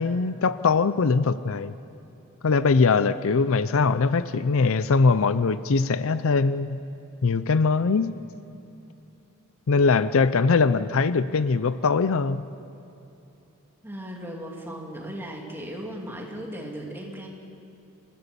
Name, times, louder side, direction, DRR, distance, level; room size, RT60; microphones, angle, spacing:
voice 1, 0.0-1.7 2.4-6.8 7.2-8.1 9.7-12.4, left 4 dB, 65° left, 14 dB, 0.5 m, -21 dB
voice 2, 13.8-17.3, equal, 10° right, -1 dB, 2.7 m, -37 dB
26.5 x 15.0 x 6.9 m, 2.8 s
head